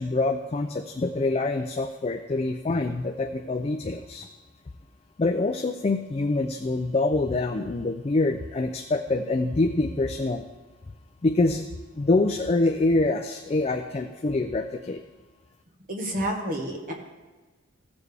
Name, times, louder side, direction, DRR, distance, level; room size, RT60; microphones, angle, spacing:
voice 1, 0.0-4.3 5.2-10.5 11.2-11.6 11.9-15.0, left 2 dB, 30° left, 4 dB, 0.4 m, -25 dB
voice 2, 15.9-16.9, right 1 dB, 45° right, 1 dB, 1.4 m, -29 dB
15.0 x 6.9 x 3.4 m, 1.3 s
head